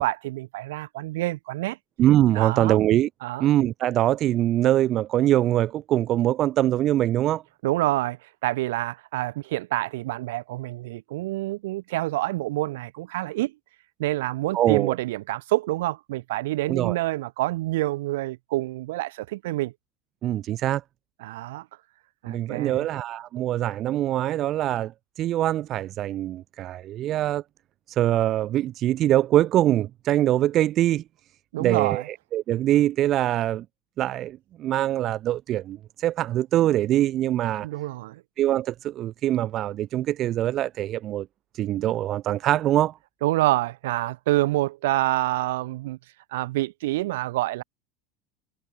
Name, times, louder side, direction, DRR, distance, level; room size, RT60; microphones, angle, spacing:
voice 1, 0.0-1.8 2.3-2.8 3.2-3.5 7.6-13.5 14.0-19.7 21.2-21.7 22.2-22.9 31.5-32.1 37.6-38.2 43.2-46.0 46.3-47.6, right 18 dB, 90° right, 4.8 m, -27 dB
voice 2, 2.0-3.1 3.4-7.4 14.5-14.9 16.7-17.0 20.2-20.8 22.3-24.9 25.2-27.4 28.0-31.0 31.6-32.0 32.3-33.6 34.0-37.7 38.4-41.3 41.6-43.0, right 13 dB, 35° right, 0.6 m, -23 dB
supercardioid pair, 165°, 0 cm